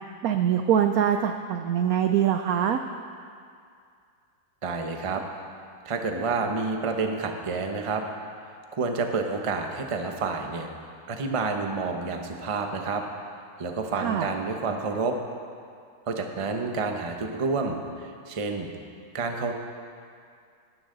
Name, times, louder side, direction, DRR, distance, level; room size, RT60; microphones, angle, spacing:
voice 1, 0.2-2.8 14.0-14.3, right 9 dB, 80° right, 7 dB, 0.8 m, -23 dB
voice 2, 4.6-5.2 5.8-8.0 8.7-10.7 11.1-13.0 13.6-15.2 16.1-18.7 19.1-19.5, right 4 dB, 35° right, 4 dB, 0.5 m, -29 dB
18.5 x 11.0 x 3.9 m, 2.3 s
omnidirectional pair, 2.1 m